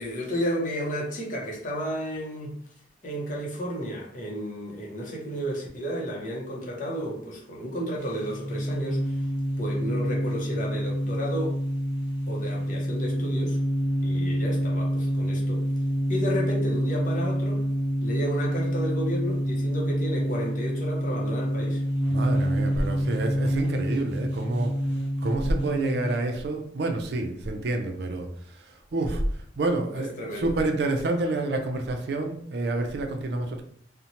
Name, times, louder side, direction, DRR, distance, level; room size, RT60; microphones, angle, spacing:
voice 1, 0.0-2.5 3.0-9.2 9.6-11.6 12.3-13.6 14.0-15.6 16.1-17.6 18.0-21.8 29.9-30.6, equal, 45° left, -2 dB, 0.6 m, -32 dB
sound 1, 8.0-26.2, equal, 10° left, 1.1 m, -27 dB
voice 2, 22.1-24.7 25.2-33.6, right 2 dB, 60° right, 4 dB, 0.4 m, -28 dB
2.6 x 2.1 x 2.8 m, 0.66 s
head